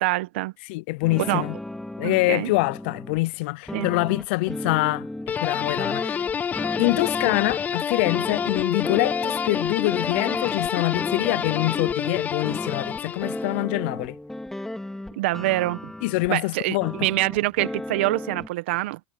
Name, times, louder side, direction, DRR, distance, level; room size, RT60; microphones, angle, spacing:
voice 1, 0.0-0.5 1.3-1.4 2.0-2.5 3.7-3.9 15.2-15.9 16.3-19.0, right 18 dB, 80° right, 1.1 m, -25 dB
voice 2, 0.7-1.6 2.0-5.1 5.4-6.2 6.8-14.2 16.0-17.1, left 23 dB, 75° left, 0.5 m, -25 dB
sound 1, 1.0-3.2 3.7-7.6 8.0-12.0 12.4-16.3 16.8-18.5, left 1 dB, 5° left, 2.9 m, -35 dB
sound 2, 5.3-13.6, left 7 dB, 25° left, 0.3 m, -28 dB
supercardioid pair, 100°, 6 cm